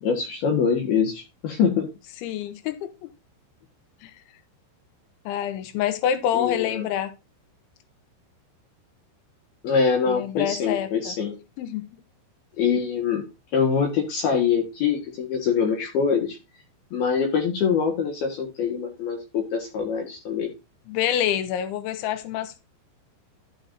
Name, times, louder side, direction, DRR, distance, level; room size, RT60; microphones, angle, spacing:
voice 1, 0.0-1.9 6.3-6.8 9.6-11.3 12.6-13.3 13.5-16.4 16.9-20.5, left 6 dB, 60° left, 3.1 m, -24 dB
voice 2, 2.2-3.1 4.0-4.1 5.3-7.1 10.1-11.2 11.6-11.8 20.9-22.6, left 10 dB, 80° left, 3.4 m, -27 dB
13.5 x 6.8 x 2.7 m
omnidirectional pair, 5.5 m